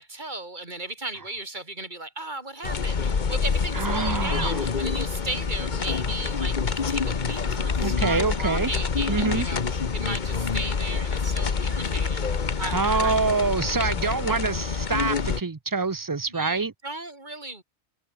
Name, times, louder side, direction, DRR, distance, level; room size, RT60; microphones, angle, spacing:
voice 1, 0.0-9.6 9.9-13.2 13.5-13.9 16.3-17.6, right 2 dB, 40° right, 3.4 m, -36 dB
sound 1, 2.6-15.4, left 5 dB, 45° left, 1.2 m, -27 dB
voice 2, 3.7-4.6 7.8-8.7 9.1-9.5 12.7-16.7, right 4 dB, 20° right, 0.6 m, -26 dB
open air
omnidirectional pair, 1.2 m